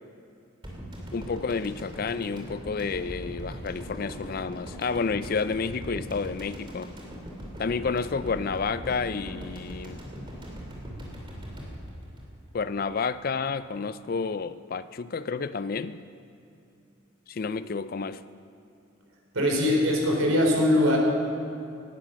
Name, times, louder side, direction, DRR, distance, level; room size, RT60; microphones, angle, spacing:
sound 1, 0.6-13.0 13.3-13.4, equal, 25° right, 2.7 m, -40 dB
voice 1, 1.1-6.9 7.6-10.0 12.5-16.0 17.3-18.2, left 4 dB, 45° left, 0.4 m, -30 dB
voice 2, 19.3-21.0, left 1 dB, 85° right, 3.9 m, -22 dB
18.0 x 11.5 x 6.3 m
head